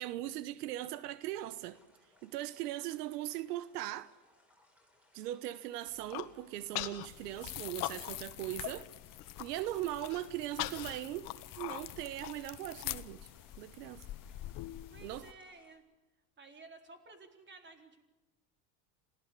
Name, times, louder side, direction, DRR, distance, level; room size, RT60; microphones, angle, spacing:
voice 1, 0.0-1.8 2.2-4.1 5.1-8.9 9.4-11.3 11.6-13.3 13.6-14.1 15.0-15.3, right 14 dB, 85° right, 1.2 m, -39 dB
sound 1, 1.4-15.8, left 1 dB, 5° right, 7.8 m, -69 dB
Human voice, 5.9-6.3 6.8-7.1 7.4-8.3 8.6-8.7 9.1-9.5 10.0-12.9, left 17 dB, 80° left, 1.7 m, -40 dB
sound 2, 7.0-15.3, left 15 dB, 45° left, 1.1 m, -46 dB
voice 2, 14.9-15.8 16.4-18.0, right 3 dB, 25° right, 4.3 m, -54 dB
26.5 x 18.0 x 8.3 m
supercardioid pair, 115°, 46 cm